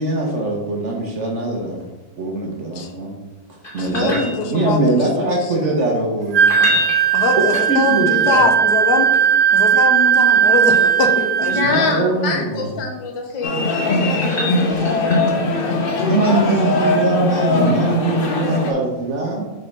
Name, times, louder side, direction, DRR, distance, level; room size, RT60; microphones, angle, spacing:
voice 1, 0.0-1.8 2.2-3.1 3.5-6.8 7.5-8.5 11.5-12.7 16.1-19.4, right 2 dB, 50° right, 0 dB, 1.0 m, -22 dB
sound 1, 3.6-4.9 6.3-8.2 10.3-12.0 13.4-15.5 18.2-18.3, left 2 dB, 30° left, 2.5 m, -29 dB
voice 2, 3.8-5.4 7.1-9.2 9.5-11.9, left 4 dB, 70° left, 5 dB, 1.2 m, -23 dB
Wind instrument woodwind instrument, 6.3-11.8, right 8 dB, 70° right, 0.7 m, -16 dB
voice 3, 11.5-16.1, left 3 dB, 90° left, 2 dB, 1.9 m, -26 dB
sound 2, 13.4-18.7, left 2 dB, 55° left, 0.6 m, -20 dB
5.5 x 4.0 x 5.3 m, 1.1 s
omnidirectional pair, 2.0 m